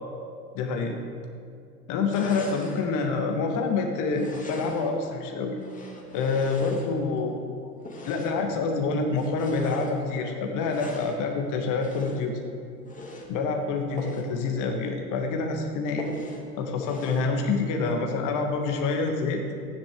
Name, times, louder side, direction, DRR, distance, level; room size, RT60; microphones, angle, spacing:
voice 1, 0.5-1.0 1.9-5.6 6.1-7.4 8.0-12.4 13.3-16.1 16.6-19.6, left 4 dB, 40° left, 3 dB, 1.5 m, -27 dB
sound 1, 2.1-2.9 4.1-5.0 5.6-7.2 7.8-8.5 9.1-10.0 10.6-11.2 11.8-12.3 12.8-13.3 13.9-14.3 14.7-14.8 15.2-15.3 16.0-16.5 16.8-17.3, left 1 dB, 15° left, 2.1 m, -40 dB
15.5 x 10.0 x 3.6 m, 2.3 s
figure-of-eight pair, 85°, 49 cm